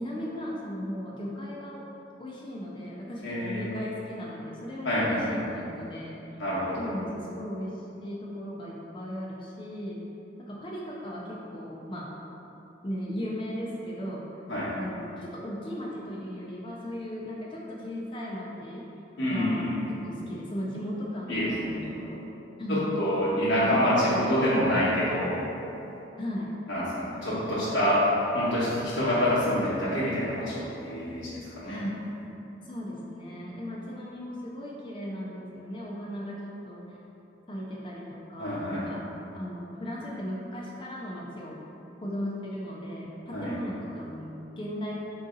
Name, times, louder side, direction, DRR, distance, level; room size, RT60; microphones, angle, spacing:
voice 1, 0.0-1.9 2.2-6.4 6.8-10.0 10.4-12.1 12.8-14.3 14.7-18.8 19.2-22.2 22.6-23.0 23.4-23.8 24.1-24.2 26.2-26.5 31.6-32.0 32.6-37.0 37.5-39.0 39.3-41.6 42.0-45.0, equal, 25° left, -4 dB, 0.4 m, -36 dB
voice 2, 3.2-3.7 4.8-5.3 6.4-6.9 14.5-14.7 19.2-19.7 21.3-21.9 22.7-25.4 26.7-28.0 28.3-31.8 38.4-38.8 43.3-43.5, equal, 85° left, -10 dB, 0.9 m, -27 dB
3.8 x 2.6 x 3.7 m, 3.0 s
head